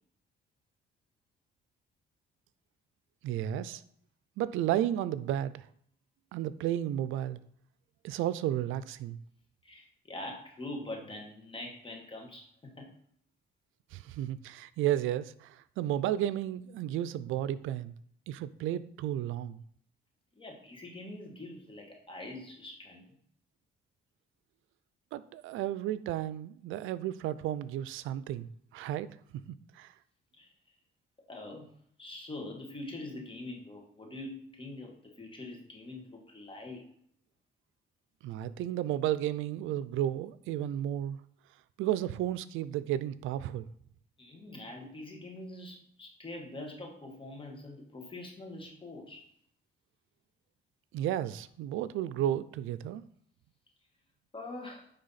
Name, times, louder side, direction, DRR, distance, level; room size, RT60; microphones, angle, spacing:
voice 1, 3.2-3.8 4.4-5.7 6.3-7.4 8.0-9.2 13.9-17.9 18.3-19.6 25.1-29.1 29.7-29.9 38.2-41.2 41.8-43.7 50.9-53.0, right 12 dB, 90° right, 0.4 m, -33 dB
voice 2, 9.6-12.9 20.3-23.1 30.4-30.5 31.3-31.7 32.0-36.8 44.2-49.3 54.3-54.9, left 2 dB, 25° left, 1.7 m, -44 dB
9.5 x 3.4 x 4.1 m
cardioid pair, 90°, 20 cm